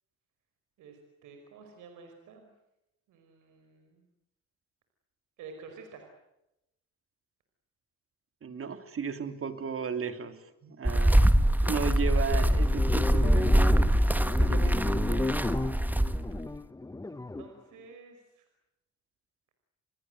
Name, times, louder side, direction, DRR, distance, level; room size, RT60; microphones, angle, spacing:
voice 1, 0.8-2.5 3.1-4.1 5.4-6.1 17.1-18.5, right 5 dB, 85° right, 5 dB, 5.2 m, -50 dB
voice 2, 8.4-15.4, right 6 dB, 45° right, 8 dB, 3.1 m, -36 dB
sound 1, 10.8-16.4, right 1 dB, 5° right, 1.6 m, -24 dB
sound 2, 11.8-17.5, left 2 dB, 10° left, 0.9 m, -30 dB
30.0 x 21.0 x 8.0 m, 0.88 s
cardioid pair, 90°, 30 cm